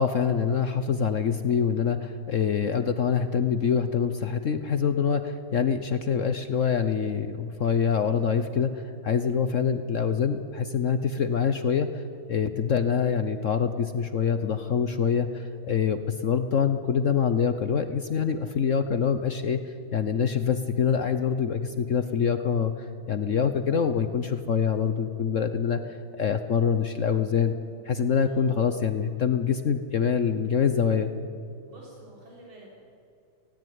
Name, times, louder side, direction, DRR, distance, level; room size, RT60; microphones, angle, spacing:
voice 1, 0.0-12.0 12.3-27.5 27.8-31.1, left 7 dB, 60° left, 9 dB, 0.8 m, -25 dB
voice 2, 28.2-28.8 31.7-32.7, right 1 dB, 80° right, -4 dB, 4.6 m, -50 dB
17.5 x 17.0 x 9.4 m, 2.7 s
omnidirectional pair, 2.2 m